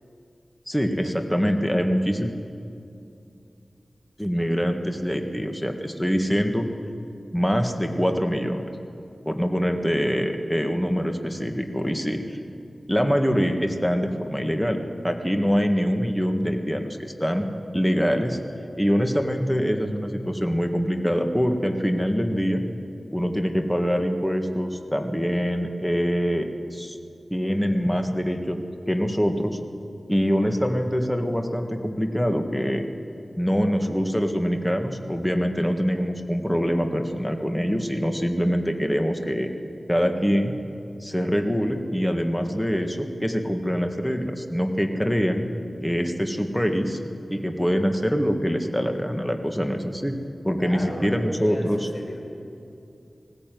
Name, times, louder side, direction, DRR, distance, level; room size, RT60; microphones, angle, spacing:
voice 1, 0.7-2.3 4.2-6.7 7.3-8.7 9.3-12.4 12.9-17.5 17.7-18.4 18.8-22.6 23.1-27.0 27.3-29.6 30.1-32.8 33.4-39.5 39.9-40.6 41.0-45.5 45.8-47.0 47.3-50.2 50.4-51.9, equal, 5° left, 5 dB, 1.8 m, -24 dB
voice 2, 50.6-51.7 51.9-52.2, left 1 dB, 50° left, 1 dB, 5.2 m, -36 dB
19.5 x 16.5 x 9.3 m, 2.6 s
wide cardioid pair, 60°, 0 cm